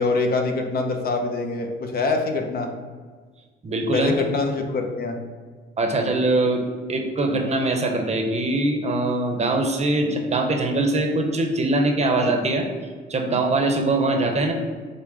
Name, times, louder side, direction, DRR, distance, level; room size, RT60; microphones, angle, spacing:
voice 1, 0.0-2.7 3.9-5.2, left 3 dB, 50° left, 4 dB, 0.7 m, -24 dB
voice 2, 3.6-4.2 5.8-6.6 6.9-12.6 13.1-14.5, right 2 dB, 35° right, 3 dB, 0.7 m, -22 dB
5.3 x 2.1 x 4.8 m, 1.5 s
cardioid pair, 90°, 20 cm